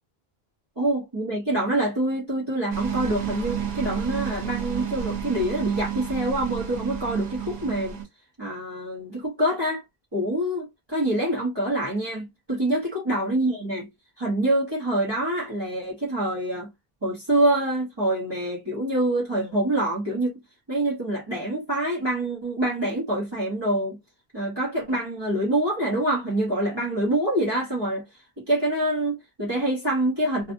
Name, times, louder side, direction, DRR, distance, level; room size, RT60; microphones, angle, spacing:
voice 1, 0.8-8.0 8.4-9.8 10.1-13.9 14.2-16.7 17.0-20.3 20.7-24.0 24.3-28.0 28.4-30.5, right 1 dB, 25° right, 1.1 m, -26 dB
sound 1, 2.7-8.0, right 8 dB, 50° right, 0.7 m, -31 dB
2.7 x 2.4 x 2.5 m
omnidirectional pair, 1.0 m